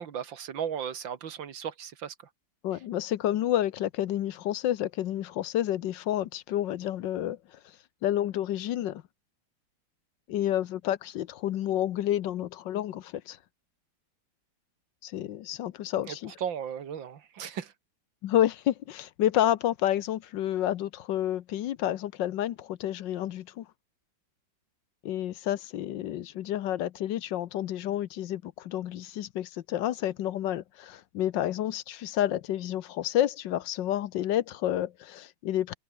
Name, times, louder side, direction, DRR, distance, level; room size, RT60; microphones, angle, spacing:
voice 1, 0.0-2.1 16.1-17.7, right 8 dB, 85° right, 2.3 m, -36 dB
voice 2, 2.6-7.6 8.0-9.0 10.3-13.4 15.0-16.3 18.2-23.7 25.0-35.7, left 12 dB, 75° left, 1.5 m, -29 dB
omnidirectional pair, 2.0 m